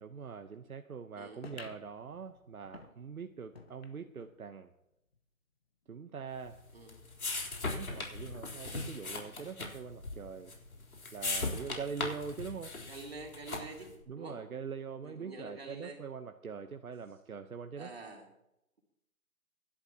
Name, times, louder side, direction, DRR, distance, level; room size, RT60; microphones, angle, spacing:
voice 1, 0.0-4.7 5.9-6.6 7.6-10.6 11.1-12.8 14.1-17.9, right 6 dB, 75° right, 7 dB, 1.0 m, -43 dB
sound 1, 1.4-4.4 4.8-4.9 5.1-5.2 6.0-6.1, left 3 dB, 45° left, 1.1 m, -53 dB
sound 2, 6.4-13.9, left 3 dB, 70° left, 3.8 m, -39 dB
voice 2, 11.5-12.0 12.8-14.4 15.0-16.0 17.8-18.3, right 3 dB, 45° right, 1 dB, 3.0 m, -47 dB
24.0 x 11.5 x 2.9 m, 0.86 s
hypercardioid pair, 175°, 44 cm